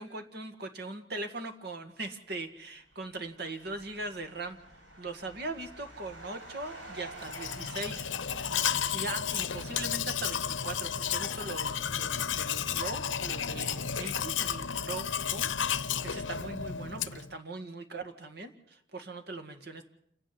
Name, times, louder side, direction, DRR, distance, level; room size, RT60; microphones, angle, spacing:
voice 1, 0.0-4.6 5.0-8.5 8.9-19.9, right 2 dB, 55° right, 7 dB, 2.0 m, -40 dB
sound 1, 2.8-9.1, right 1 dB, 75° right, 5.5 m, -50 dB
Domestic sounds home sounds, 7.2-17.3, left 8 dB, 80° left, 0.8 m, -32 dB
28.5 x 10.0 x 9.9 m, 0.70 s
head